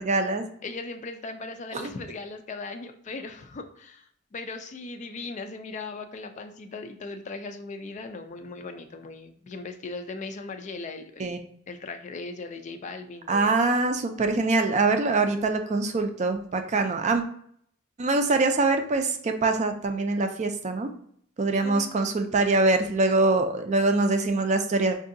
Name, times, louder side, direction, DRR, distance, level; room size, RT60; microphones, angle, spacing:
voice 1, 0.0-0.4 1.7-1.9 11.2-11.4 13.3-17.2 18.0-20.9 21.4-25.0, right 3 dB, 35° right, 6 dB, 0.4 m, -24 dB
voice 2, 0.6-11.4 11.7-13.5 21.6-21.9, left 3 dB, 35° left, 7 dB, 0.4 m, -38 dB
4.7 x 2.6 x 2.6 m, 0.64 s
head